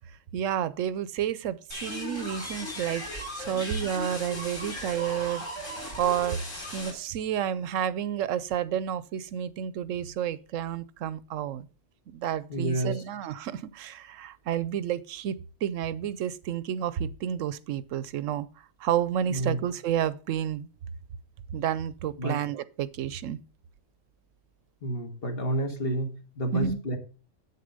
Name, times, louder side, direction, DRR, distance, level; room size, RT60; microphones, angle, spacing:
voice 1, 0.3-5.5 6.0-6.4 6.7-11.7 12.1-15.4 15.6-18.5 18.8-20.7 21.5-23.4 26.5-26.8, right 9 dB, 80° right, 1.0 m, -30 dB
Seriously weird noise, 1.7-6.9, left 1 dB, 85° left, 4.7 m, -37 dB
voice 2, 12.5-13.0 19.3-19.6 22.2-22.4 24.8-27.0, right 1 dB, 50° left, 1.8 m, -30 dB
8.3 x 6.7 x 5.2 m
omnidirectional pair, 1.3 m